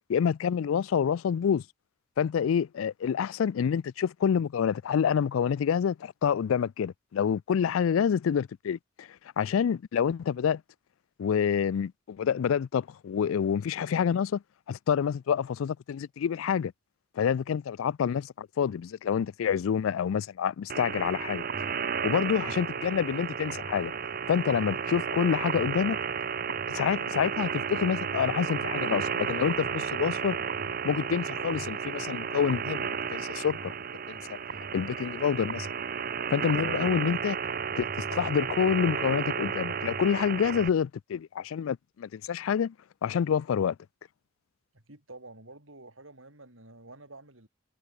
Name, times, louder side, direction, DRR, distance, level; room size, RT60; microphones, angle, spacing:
voice 1, 0.1-1.6 2.2-9.1 9.4-10.6 11.2-14.4 14.7-16.7 17.2-21.7 22.0-23.9 24.3-26.0 26.7-30.4 30.8-33.7 34.1-34.4 34.7-35.7 36.3-37.4 37.8-42.7 43.0-43.8, left 7 dB, 80° left, 0.4 m, -27 dB
sound 1, 20.7-40.7, right 6 dB, 45° right, 0.8 m, -33 dB
voice 2, 44.7-47.5, right 2 dB, 75° right, 6.8 m, -49 dB
head